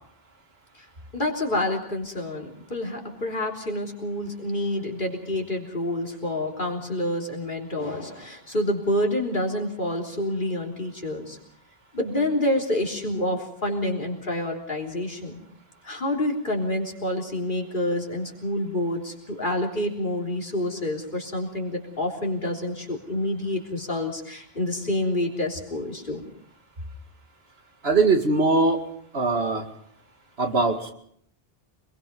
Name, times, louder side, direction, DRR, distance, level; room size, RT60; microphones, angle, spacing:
voice 1, 1.1-11.4 11.9-15.4 15.8-26.2, left 1 dB, 55° left, 1 dB, 3.8 m, -28 dB
voice 2, 27.8-28.9 29.1-29.6 30.4-30.9, right 3 dB, 80° right, 5 dB, 2.5 m, -21 dB
24.5 x 21.5 x 5.4 m, 0.67 s
omnidirectional pair, 1.0 m